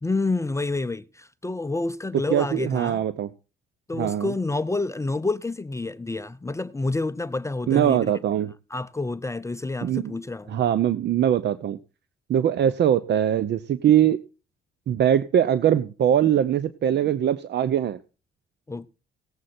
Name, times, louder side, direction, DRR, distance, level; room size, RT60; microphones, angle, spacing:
voice 1, 0.0-3.0 3.9-8.1 8.7-10.6 18.7-18.9, left 3 dB, 15° left, 0.5 m, -28 dB
voice 2, 2.3-3.3 4.0-4.3 7.7-8.5 9.8-10.1 10.5-11.8 12.3-14.2 14.9-18.0, right 10 dB, 60° right, 0.7 m, -22 dB
17.5 x 7.6 x 4.3 m
cardioid pair, 90°, 20 cm